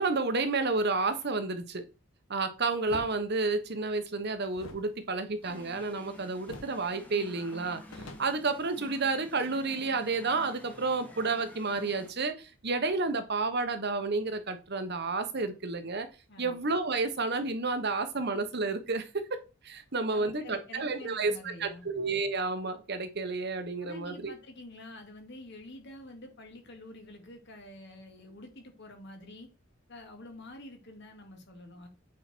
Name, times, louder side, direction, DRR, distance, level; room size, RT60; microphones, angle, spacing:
voice 1, 0.0-1.9 2.3-7.8 8.2-16.1 16.4-19.4 19.6-24.3, right 3 dB, 50° right, 1.2 m, -31 dB
sound 1, 2.8-3.1 4.5-6.1 6.4-6.8 7.1-7.2 7.6-9.1, left 2 dB, 80° left, 1.3 m, -47 dB
sound 2, 5.4-12.1, equal, 10° left, 1.3 m, -50 dB
voice 2, 20.1-21.9 23.8-29.5 29.9-31.9, left 1 dB, 55° left, 2.3 m, -48 dB
8.6 x 4.9 x 4.5 m
head